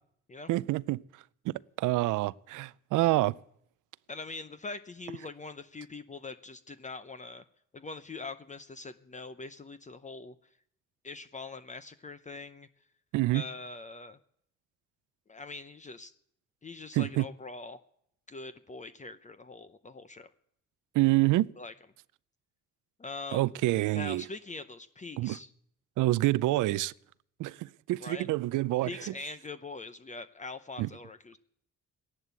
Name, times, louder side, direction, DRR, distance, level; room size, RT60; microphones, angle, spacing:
voice 1, 0.5-1.0 1.4-3.4 13.1-13.4 16.9-17.3 20.9-21.5 23.3-24.2 25.2-25.4 26.0-26.9 27.4-29.1 30.8-30.9, right 18 dB, 80° right, 0.5 m, -27 dB
voice 2, 4.1-7.4 7.7-10.4 11.0-12.7 13.3-14.2 15.3-16.1 16.6-17.8 18.3-20.3 21.6-21.7 23.0-23.5 23.9-25.5 28.0-28.3 28.8-31.4, left 3 dB, 25° left, 0.7 m, -43 dB
14.5 x 11.0 x 8.2 m
cardioid pair, 90°, 30 cm